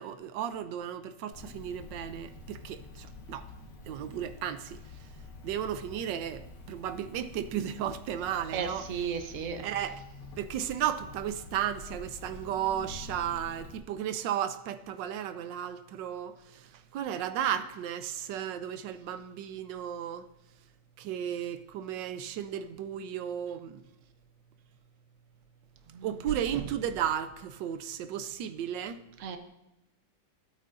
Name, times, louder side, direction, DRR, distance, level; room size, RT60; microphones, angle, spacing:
voice 1, 0.0-3.5 3.8-5.1 5.4-8.9 9.6-10.0 10.4-20.3 21.0-23.8 26.0-29.0, right 10 dB, 85° right, 1.3 m, -34 dB
Cricket, 1.3-13.8, left 3 dB, 80° left, 2.0 m, -47 dB
voice 2, 8.5-9.7 25.9-26.1 29.2-29.4, right 6 dB, 55° right, 1.1 m, -34 dB
15.5 x 8.5 x 2.5 m
omnidirectional pair, 1.9 m